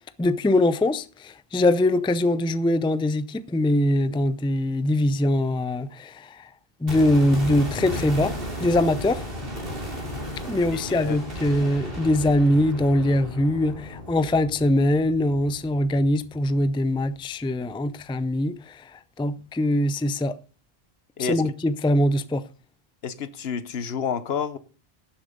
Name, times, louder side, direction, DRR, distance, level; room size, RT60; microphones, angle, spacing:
voice 1, 0.2-6.5 6.8-8.3 8.6-9.2 10.5-18.8 19.2-20.3 21.2-22.4, left 1 dB, 10° left, 0.3 m, -22 dB
sound 1, 6.9-16.9 17.2-17.3, left 1 dB, 65° right, 3.3 m, -35 dB
voice 2, 10.7-11.2 21.2-21.5 23.0-24.6, left 6 dB, 75° left, 1.1 m, -30 dB
11.5 x 7.1 x 5.2 m
omnidirectional pair, 1.0 m